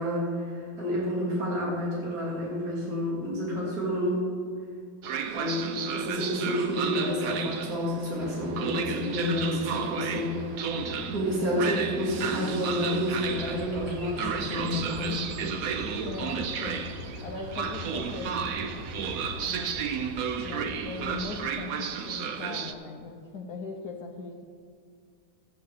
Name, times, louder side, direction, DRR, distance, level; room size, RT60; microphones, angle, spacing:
voice 1, 0.0-4.2 5.3-10.4 11.1-15.2, equal, 50° right, -5 dB, 2.8 m, -29 dB
Train, 5.0-22.7, right 6 dB, 65° right, 0.9 m, -33 dB
sound 1, 8.2-19.8, left 7 dB, 80° left, 1.4 m, -44 dB
sound 2, 13.1-21.5, right 2 dB, 85° right, 1.7 m, -43 dB
voice 2, 16.0-18.6 19.4-19.9 20.4-24.5, left 4 dB, 65° left, 1 dB, 1.2 m, -40 dB
16.0 x 8.6 x 3.6 m, 2.2 s
omnidirectional pair, 2.1 m